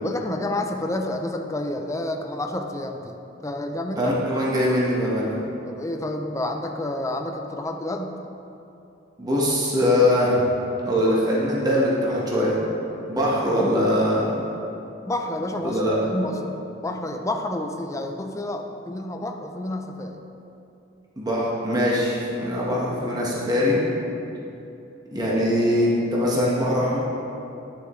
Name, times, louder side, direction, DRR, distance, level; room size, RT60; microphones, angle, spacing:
voice 1, 0.0-3.2 3.4-4.4 5.7-8.2 15.0-16.6 16.8-20.2, left 1 dB, 15° left, 4 dB, 0.5 m, -29 dB
voice 2, 4.0-5.4 9.2-10.5 10.8-12.6 13.1-14.3 15.6-15.9 21.2-23.8 25.1-27.0, left 1 dB, 20° right, -6 dB, 1.3 m, -22 dB
9.9 x 6.7 x 3.2 m, 2.8 s
head